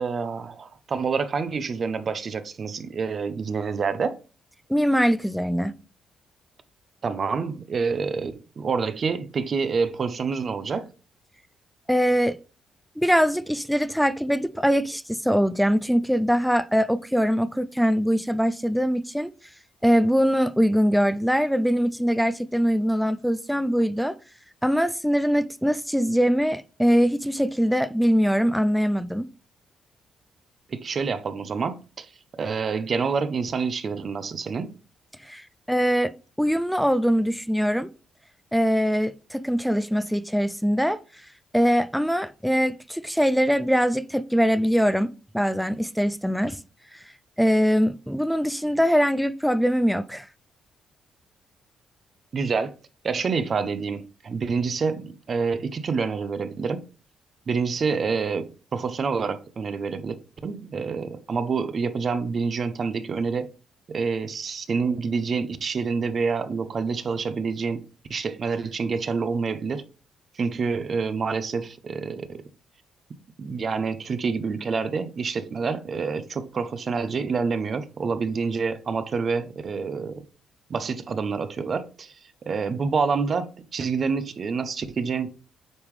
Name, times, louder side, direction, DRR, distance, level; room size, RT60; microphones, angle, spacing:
voice 1, 0.0-4.2 7.0-10.9 30.7-32.1 32.4-34.7 52.3-52.7 53.0-56.8 57.5-60.2 60.4-63.5 63.9-67.8 68.1-69.8 70.3-72.4 73.4-80.2 80.7-82.2 82.5-85.3, right 5 dB, 45° right, 0.7 m, -27 dB
voice 2, 4.7-5.7 11.9-12.4 13.0-19.3 19.8-24.1 24.6-29.3 35.2-36.1 36.4-37.9 38.5-41.0 41.5-46.6 47.4-50.3, equal, ahead, 0.4 m, -22 dB
9.4 x 3.6 x 3.2 m
cardioid pair, 90°, 0 cm